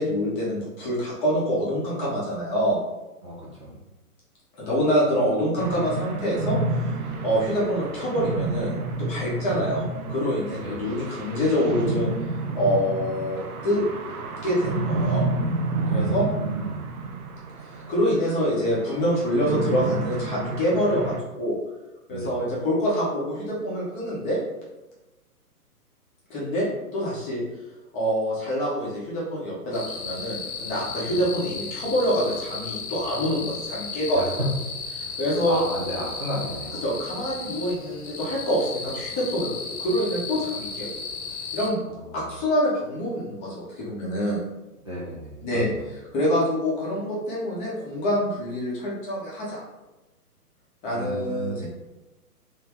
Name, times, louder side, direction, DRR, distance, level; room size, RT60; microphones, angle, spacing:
voice 1, 0.0-2.8 4.6-6.9 7.2-12.1 12.5-13.8 14.4-15.2 15.9-16.3 17.7-21.6 22.1-24.4 26.3-27.4 27.9-34.2 35.2-35.6 36.8-39.5 39.8-40.9 41.5-41.8 42.1-44.4 45.4-45.7 46.1-49.6 50.8-51.6, equal, 15° left, -6 dB, 0.8 m, -26 dB
voice 2, 3.2-3.8 9.4-9.5 10.6-10.8 15.9-16.8 22.1-22.3 31.1-31.2 34.1-34.5 35.0-35.2 35.5-36.9 41.9-42.0 44.8-45.9 50.9-51.6, right 1 dB, 20° right, -10 dB, 0.4 m, -33 dB
sound 1, 5.6-21.2, right 3 dB, 70° right, 0.6 m, -30 dB
sound 2, 29.7-41.7, left 5 dB, 65° left, 0.9 m, -35 dB
3.3 x 2.8 x 3.5 m, 1.0 s
figure-of-eight pair, 130°, 46 cm